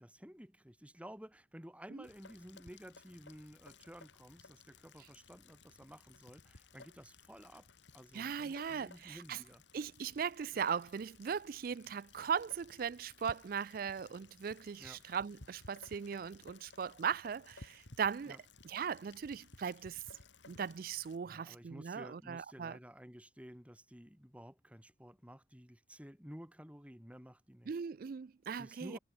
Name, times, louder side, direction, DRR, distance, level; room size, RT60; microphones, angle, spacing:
voice 1, 0.0-7.7 7.9-9.6 10.5-10.6 14.8-15.0 18.3-18.4 21.2-27.8 28.6-29.0, equal, 5° right, 3.7 m, -53 dB
Rain, 2.0-21.2, left 3 dB, 80° left, 2.7 m, -59 dB
voice 2, 8.1-9.4 9.7-18.4 18.6-20.0 20.5-22.8 27.7-29.0, right 7 dB, 50° right, 0.4 m, -39 dB
head